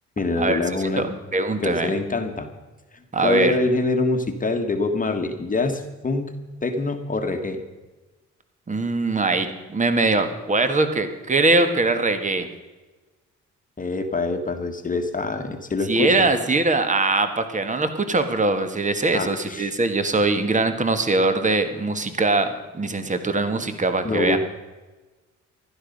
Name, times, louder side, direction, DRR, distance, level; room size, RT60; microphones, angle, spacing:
voice 1, 0.2-1.0 1.6-2.5 2.9-7.6 13.8-16.3 19.1-19.7 24.0-24.4, left 3 dB, 25° left, 5 dB, 1.4 m, -25 dB
voice 2, 1.0-1.9 3.1-3.5 8.7-12.5 15.9-24.4, right 3 dB, 25° right, 9 dB, 1.7 m, -22 dB
15.5 x 12.0 x 5.4 m, 1.2 s
cardioid pair, 90°, 30 cm